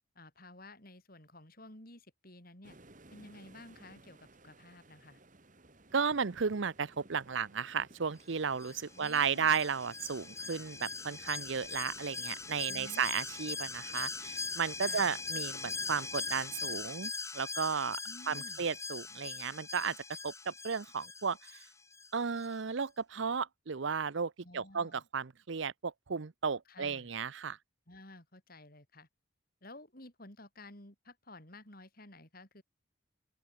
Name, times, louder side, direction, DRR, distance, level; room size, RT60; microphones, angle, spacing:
voice 1, 0.2-2.8 3.1-5.2 8.9-9.6 12.7-13.0 14.8-15.1 18.0-18.7 24.4-25.0 26.7-27.1 27.9-29.1 29.6-32.6, left 2 dB, 45° left, 5.6 m, -53 dB
sound 1, 2.6-16.9, right 2 dB, 40° right, 2.0 m, -58 dB
voice 2, 5.9-18.0 18.3-20.0 20.2-21.6 22.1-27.6, right 6 dB, 60° right, 0.7 m, -34 dB
Alarm, 8.6-22.1 22.4-22.5, left 4 dB, 15° left, 1.8 m, -41 dB
open air
head